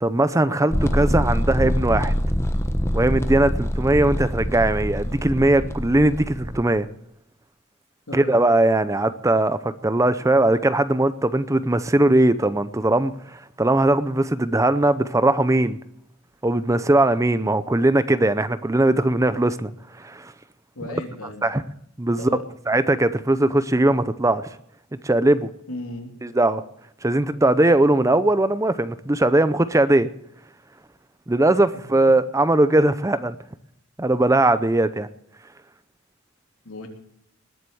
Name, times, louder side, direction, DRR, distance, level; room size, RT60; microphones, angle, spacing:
voice 1, 0.0-2.1 2.9-6.9 8.1-15.8 16.4-19.7 20.0-20.3 20.9-21.0 21.4-21.6 22.0-22.3 22.7-24.5 25.0-25.5 26.2-26.6 27.0-30.1 31.3-33.3 34.0-35.1, right 2 dB, 15° right, 13 dB, 0.6 m, -20 dB
sound 1, 0.7-6.6, equal, 15° left, 1.1 m, -25 dB
voice 2, 8.1-8.4 20.7-21.4 22.2-22.4 25.7-26.1 36.6-36.9, left 1 dB, 80° left, 3 dB, 3.2 m, -34 dB
20.0 x 7.9 x 7.0 m, 0.78 s
head